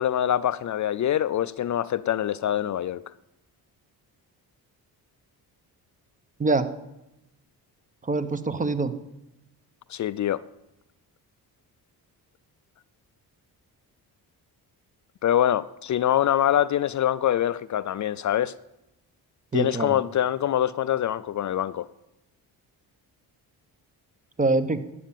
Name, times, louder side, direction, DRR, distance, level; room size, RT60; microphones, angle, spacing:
voice 1, 0.0-3.0 9.9-10.4 15.2-18.5 19.5-21.9, left 11 dB, 45° left, 0.5 m, -24 dB
voice 2, 8.0-8.9 19.5-20.0 24.4-24.8, right 3 dB, 20° right, 1.1 m, -24 dB
13.0 x 8.5 x 9.1 m
cardioid pair, 115°, 40 cm